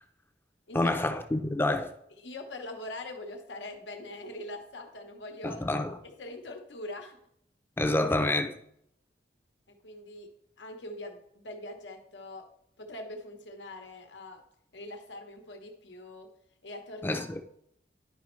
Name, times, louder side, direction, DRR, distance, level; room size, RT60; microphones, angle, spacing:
voice 1, 0.7-1.9 5.4-6.0 7.8-8.6 17.0-17.4, left 1 dB, 10° left, 0.5 m, -28 dB
voice 2, 2.2-5.6 6.0-7.2 9.7-10.3 10.6-12.5 12.8-14.4 14.7-16.3 16.6-17.2, left 1 dB, 85° left, 1.1 m, -42 dB
10.5 x 5.2 x 3.1 m
head